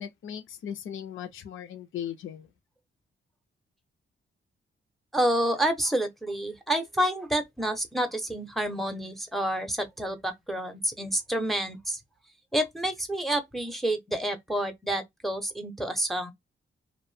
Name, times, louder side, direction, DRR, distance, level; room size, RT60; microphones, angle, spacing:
voice 1, 0.0-2.5, left 9 dB, 75° left, 0.5 m, -38 dB
voice 2, 5.1-12.0 12.5-16.3, right 1 dB, ahead, 0.6 m, -29 dB
2.5 x 2.0 x 3.1 m
cardioid pair, 105°, 21 cm